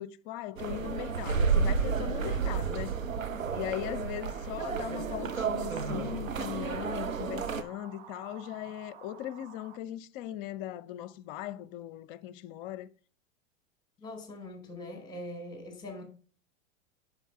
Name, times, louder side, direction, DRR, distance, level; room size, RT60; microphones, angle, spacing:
voice 1, 0.0-2.9 3.5-12.9, left 13 dB, 40° left, 0.8 m, -39 dB
sound 1, 0.6-7.6, right 5 dB, 90° right, 0.8 m, -31 dB
sound 2, 2.2-9.8, right 8 dB, 50° right, 1.3 m, -52 dB
voice 2, 14.0-16.0, left 1 dB, 10° left, 4.6 m, -42 dB
8.2 x 6.2 x 5.7 m
figure-of-eight pair, 95°, 39 cm